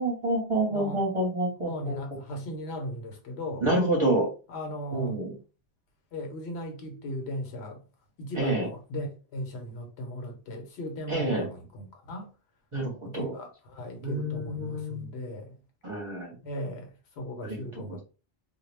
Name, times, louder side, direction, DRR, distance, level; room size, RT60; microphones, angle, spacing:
voice 1, 0.0-2.0 3.6-4.3 4.9-5.3 8.4-8.7 11.1-11.5 12.7-13.3 14.0-15.0 15.8-16.4 17.4-17.7, right 1 dB, 30° right, 0.8 m, -28 dB
voice 2, 0.7-1.0 1.6-3.6 4.5-5.2 6.1-7.8 8.2-12.3 13.0-15.6 16.4-18.0, equal, 85° left, 1.0 m, -37 dB
2.2 x 2.0 x 3.2 m
omnidirectional pair, 1.1 m